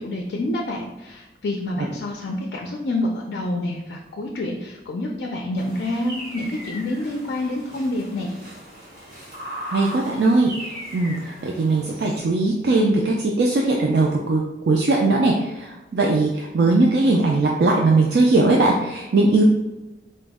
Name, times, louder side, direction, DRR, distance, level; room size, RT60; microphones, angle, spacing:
voice 1, 0.0-8.3, left 1 dB, 70° left, 1 dB, 0.4 m, -27 dB
sound 1, 5.6-12.2, equal, 55° right, 1.5 m, -38 dB
voice 2, 9.7-10.5 10.9-19.4, right 2 dB, 70° right, -1 dB, 0.4 m, -19 dB
4.1 x 2.0 x 3.4 m, 1.0 s
head